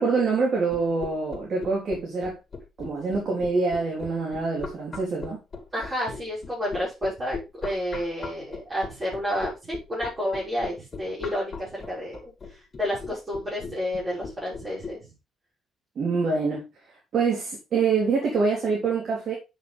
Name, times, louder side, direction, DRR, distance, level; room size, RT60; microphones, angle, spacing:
voice 1, 0.0-2.4 2.8-5.4 16.0-16.7 17.1-19.3, right 4 dB, 60° right, 3.6 m, -25 dB
sound 1, 0.7-14.9, left 4 dB, 35° left, 2.4 m, -37 dB
voice 2, 5.7-12.2 12.8-15.0, equal, 30° right, 6.1 m, -30 dB
9.1 x 6.5 x 3.4 m
cardioid pair, 90°, 0 cm